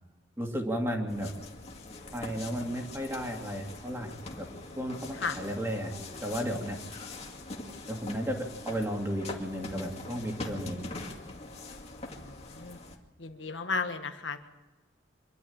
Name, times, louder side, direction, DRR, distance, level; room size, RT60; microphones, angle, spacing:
voice 1, 0.4-1.3 2.1-4.1 4.4-4.5 4.8-5.9 6.2-6.8 7.9-10.8, equal, 15° right, 2 dB, 2.6 m, -33 dB
sound 1, 1.1-13.0, left 2 dB, 35° left, 2.3 m, -43 dB
voice 2, 12.2-12.8 13.2-14.4, left 4 dB, 70° left, 6 dB, 1.6 m, -34 dB
24.5 x 12.0 x 8.7 m, 1.1 s
head